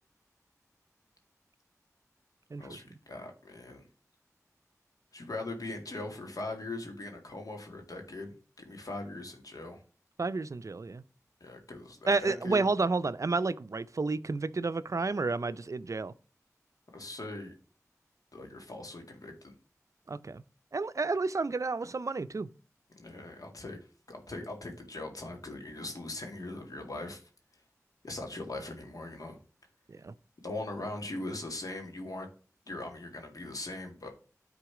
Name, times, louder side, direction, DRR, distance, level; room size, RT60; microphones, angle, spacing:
voice 1, 2.6-3.8 5.1-9.8 11.4-12.6 16.9-17.5 18.3-19.5 23.0-23.8 24.1-27.2 28.0-29.4 30.4-32.3 32.7-34.1, left 2 dB, 75° left, 2.1 m, -40 dB
voice 2, 10.2-11.0 12.1-16.1 20.1-20.4 20.7-22.5 29.9-30.1, right 3 dB, 60° right, 0.5 m, -31 dB
10.0 x 3.9 x 4.9 m
wide cardioid pair, 40°, 6 cm